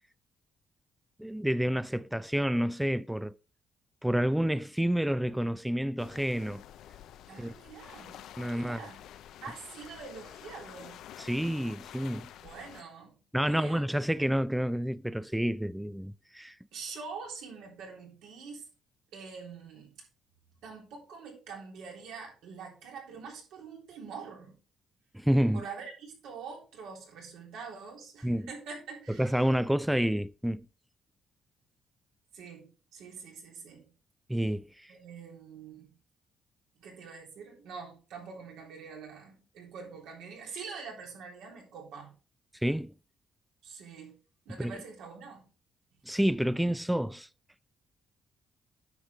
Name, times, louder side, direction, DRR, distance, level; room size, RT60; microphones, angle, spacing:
voice 1, 1.2-3.3 4.0-6.6 7.4-7.5 8.4-8.8 11.2-12.3 13.3-16.5 25.1-25.6 28.2-28.5 29.1-30.7 34.3-34.9 42.6-42.9 44.6-44.8 46.1-47.3, equal, 5° right, 0.4 m, -29 dB
sound 1, 6.0-12.8, left 11 dB, 80° left, 0.5 m, -49 dB
voice 2, 7.3-8.2 8.5-9.0 9.4-11.0 12.4-13.9 16.7-18.6 19.1-19.9 20.6-24.6 25.5-29.4 32.3-32.7 32.9-33.9 34.9-35.9 36.8-42.1 43.6-44.2 44.5-45.5, right 5 dB, 90° right, 3.5 m, -45 dB
9.8 x 6.5 x 3.5 m
cardioid pair, 90°, 0 cm